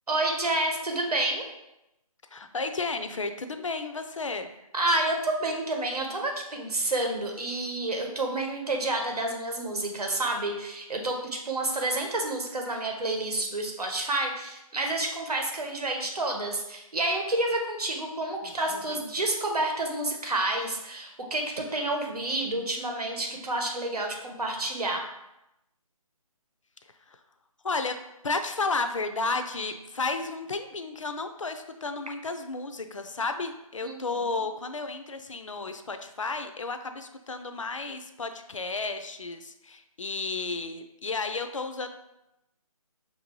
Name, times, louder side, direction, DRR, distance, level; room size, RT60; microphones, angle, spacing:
voice 1, 0.1-1.5 4.7-25.0 33.8-34.1, right 2 dB, 85° right, 2 dB, 1.0 m, -29 dB
voice 2, 2.3-4.5 18.4-19.0 27.1-27.2 27.6-28.0 28.2-41.9, left 3 dB, 55° left, 8 dB, 0.4 m, -32 dB
5.7 x 2.7 x 3.0 m, 0.89 s
hypercardioid pair, 180°, 19 cm